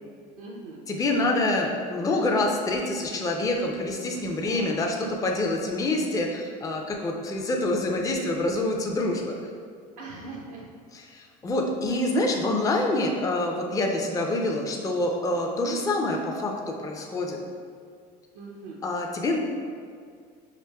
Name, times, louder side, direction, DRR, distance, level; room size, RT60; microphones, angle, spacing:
voice 1, 0.4-0.8 4.4-4.8 6.1-6.3 10.0-10.7 18.3-18.8, right 3 dB, 80° right, -3 dB, 0.5 m, -41 dB
voice 2, 0.9-9.4 11.1-17.4 18.8-19.4, left 2 dB, 15° left, 1 dB, 0.4 m, -26 dB
4.9 x 2.6 x 2.2 m, 2.1 s
supercardioid pair, 90°, 20 cm